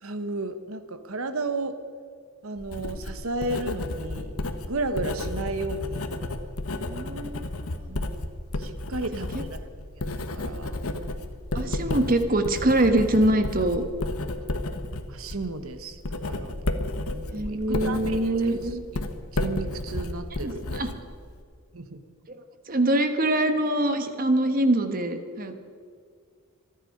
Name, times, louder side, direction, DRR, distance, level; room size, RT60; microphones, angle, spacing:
voice 1, 0.0-1.8 2.4-6.1 6.8-7.2 7.9-8.2 8.6-9.7 9.9-10.7 14.5-14.6 15.1-16.5 17.1-20.6 21.7-22.0, right 2 dB, 75° right, 10 dB, 1.2 m, -34 dB
Writing, 2.6-21.4, left 2 dB, 85° left, 1.3 m, -32 dB
voice 2, 6.9-7.6 11.5-13.8 17.3-18.8 20.4-20.9 22.7-25.5, right 1 dB, 40° right, 8 dB, 1.3 m, -24 dB
26.5 x 10.0 x 5.3 m, 2.1 s
head